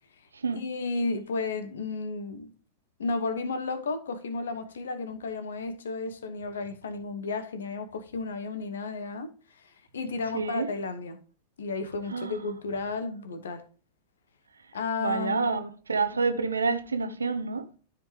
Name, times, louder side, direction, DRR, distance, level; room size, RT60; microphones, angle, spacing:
voice 1, 0.5-2.5 3.0-9.3 9.9-11.2 11.6-13.6 14.7-15.5, left 3 dB, 65° left, 1.1 m, -33 dB
voice 2, 10.3-10.7 12.1-12.4 15.0-17.6, right 4 dB, 75° right, 0.9 m, -28 dB
13.0 x 5.2 x 3.2 m
figure-of-eight pair, 90°, 0 cm